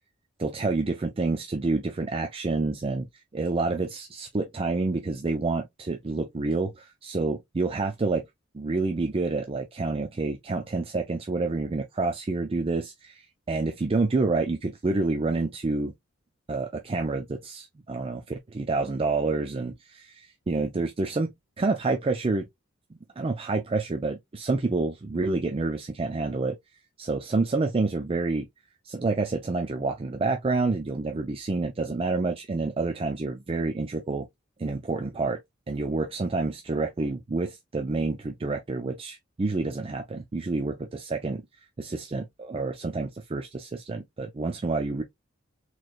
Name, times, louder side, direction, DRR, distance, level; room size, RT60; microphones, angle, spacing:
voice 1, 0.4-3.1 3.3-8.2 8.5-15.9 16.5-22.5 23.2-26.6 27.0-28.5 28.8-34.3 34.6-35.4 35.7-41.4 41.8-45.0, right 3 dB, 30° right, 0.4 m, -28 dB
4.0 x 3.1 x 2.5 m
head